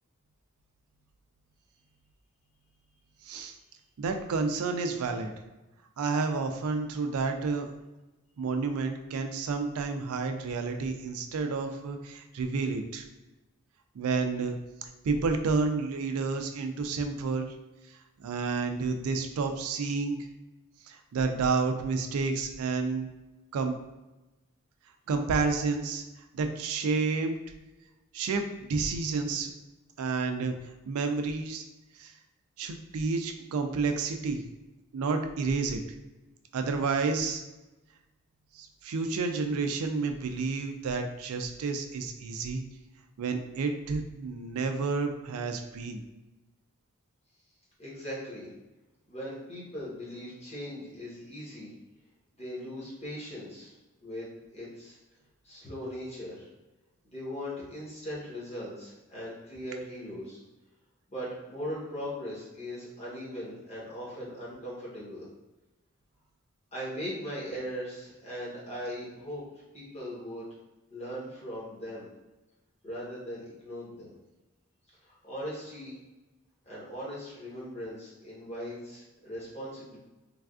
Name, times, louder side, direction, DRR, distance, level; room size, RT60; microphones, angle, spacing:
voice 1, 4.0-5.3 6.0-7.7 8.4-13.1 13.9-14.6 14.8-17.5 18.2-20.3 20.9-23.1 23.5-23.7 25.1-26.0 26.3-27.4 28.1-29.5 30.0-30.6 30.9-31.6 32.0-32.1 32.6-34.4 34.9-35.8 36.5-37.4 38.5-42.6 43.2-46.0, right 4 dB, 80° right, 6 dB, 0.4 m, -30 dB
voice 2, 47.8-48.5 49.1-51.7 52.4-53.7 54.0-54.3 54.5-55.0 55.4-56.5 57.1-60.4 61.1-65.3 66.7-69.4 69.7-70.5 70.9-72.1 72.8-74.1 75.0-75.9 76.7-80.0, equal, 30° left, -8 dB, 1.0 m, -39 dB
3.3 x 2.3 x 2.4 m, 1.1 s
head